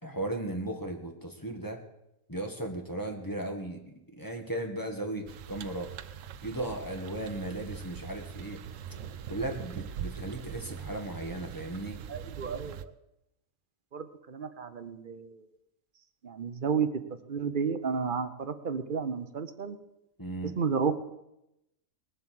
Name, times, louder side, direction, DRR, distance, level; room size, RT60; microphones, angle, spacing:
voice 1, 0.0-1.8 2.3-5.9 6.4-8.6 9.3-12.0 20.2-20.6, right 1 dB, 15° left, 3 dB, 1.6 m, -36 dB
sound 1, 5.3-12.9, right 8 dB, 70° right, 1.0 m, -42 dB
voice 2, 12.1-12.9 13.9-15.5 16.2-16.9 17.3-19.8 20.6-21.0, right 6 dB, 40° right, 11 dB, 1.0 m, -32 dB
19.5 x 7.5 x 7.6 m, 0.88 s
omnidirectional pair, 1.5 m